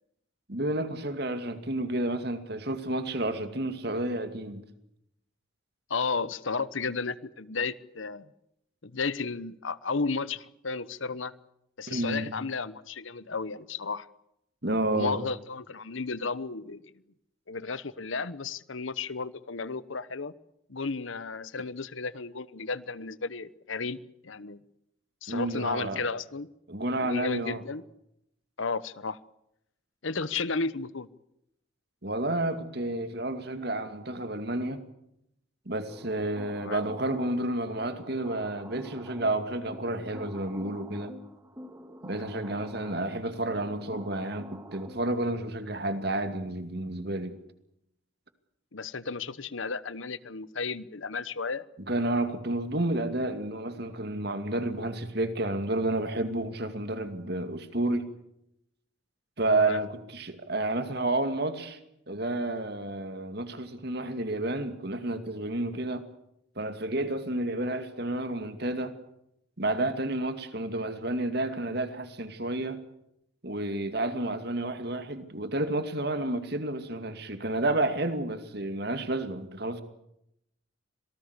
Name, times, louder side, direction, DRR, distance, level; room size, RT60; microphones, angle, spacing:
voice 1, 0.5-4.6 11.9-12.3 14.6-15.2 25.3-26.0 26.7-27.6 32.0-34.8 35.7-41.1 42.0-47.4 51.9-58.1 59.4-61.8 62.1-66.0 66.6-68.9 69.6-72.8 73.4-79.8, right 2 dB, 55° right, 2.4 m, -30 dB
voice 2, 5.9-8.3 8.8-11.3 11.8-14.1 14.9-16.9 17.5-20.3 20.7-24.0 24.2-24.6 25.2-26.5 27.0-27.8 28.6-29.2 30.0-31.1 36.6-36.8 48.7-51.6 59.6-59.8, left 4 dB, 75° left, 1.0 m, -33 dB
sound 1, 35.9-45.3, equal, 15° right, 2.4 m, -47 dB
26.5 x 18.5 x 8.2 m
head